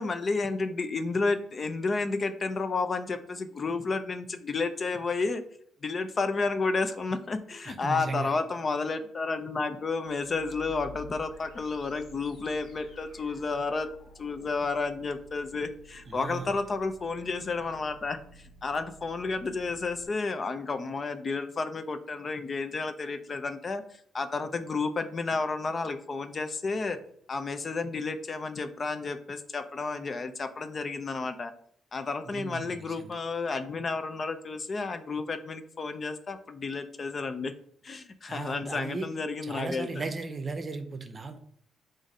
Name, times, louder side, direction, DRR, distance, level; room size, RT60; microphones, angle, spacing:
voice 1, 0.0-5.4 5.8-13.9 14.2-27.0 27.3-31.5 31.9-37.5 37.8-40.0, left 4 dB, 40° left, 9 dB, 0.5 m, -31 dB
voice 2, 7.6-8.4 16.1-16.5 32.2-33.1 38.3-39.1 39.4-41.4, right 3 dB, 35° right, 8 dB, 0.6 m, -36 dB
sound 1, 10.1-20.1, equal, 75° left, 1.3 m, -52 dB
4.8 x 2.6 x 4.0 m, 0.66 s
cardioid pair, 90°, 0 cm